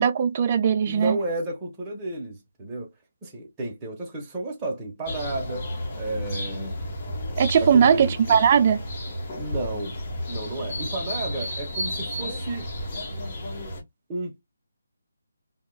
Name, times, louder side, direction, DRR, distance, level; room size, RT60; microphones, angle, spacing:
voice 1, 0.0-1.2 7.4-8.8, right 7 dB, 35° right, 0.3 m, -19 dB
voice 2, 0.8-2.9 3.2-5.7 6.0-6.8 7.6-8.4 9.4-10.0 10.3-12.7 14.1-14.3, right 2 dB, 15° right, 0.8 m, -32 dB
sound 1, 5.1-13.8, equal, 25° left, 1.2 m, -32 dB
3.4 x 2.3 x 2.3 m
figure-of-eight pair, 165°, 0 cm